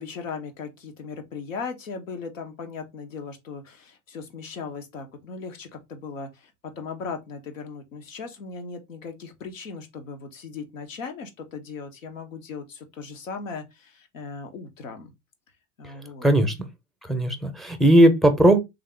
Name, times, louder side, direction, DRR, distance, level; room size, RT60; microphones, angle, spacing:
voice 1, 0.0-15.1 15.8-16.3, left 5 dB, 80° left, 0.9 m, -38 dB
voice 2, 16.2-16.7 17.0-18.6, right 1 dB, ahead, 0.6 m, -18 dB
3.5 x 2.5 x 3.3 m
hypercardioid pair, 80°, 38 cm